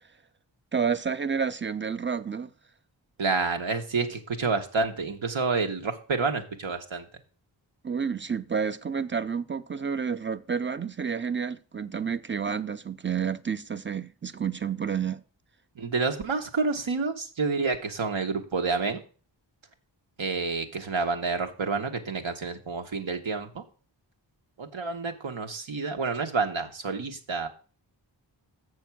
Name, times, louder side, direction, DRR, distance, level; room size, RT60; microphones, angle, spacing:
voice 1, 0.7-2.5 7.8-15.2, right 6 dB, 25° right, 0.4 m, -30 dB
voice 2, 3.2-7.1 15.7-19.0 20.2-23.6 24.6-27.5, right 4 dB, 80° right, 1.3 m, -29 dB
7.2 x 6.3 x 5.9 m
wide cardioid pair, 85°, 46 cm